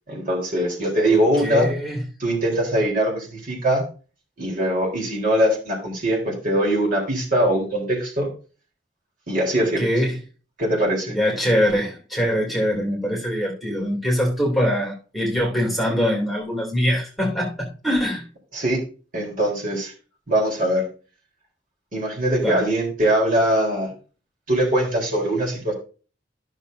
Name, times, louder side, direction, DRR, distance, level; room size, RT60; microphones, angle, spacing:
voice 1, 0.1-1.7 2.2-3.8 4.4-8.3 9.3-9.9 10.6-11.2 18.5-18.8 19.1-19.9 20.3-20.8 21.9-23.9 24.5-25.7, right 1 dB, 45° right, -1 dB, 3.7 m, -22 dB
voice 2, 1.1-2.0 9.6-10.1 11.1-18.2 22.4-22.6, equal, ahead, -3 dB, 2.8 m, -23 dB
14.0 x 6.5 x 2.7 m, 0.36 s
head